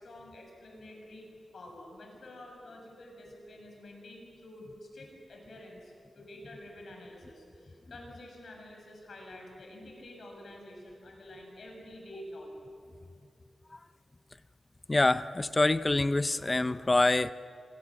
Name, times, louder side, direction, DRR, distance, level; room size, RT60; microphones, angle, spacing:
voice 1, 0.0-12.5, left 1 dB, 60° left, 1 dB, 7.0 m, -48 dB
voice 2, 14.9-17.3, left 2 dB, 20° left, 14 dB, 0.6 m, -25 dB
28.5 x 26.5 x 7.6 m, 2.5 s
wide cardioid pair, 140°, 0 cm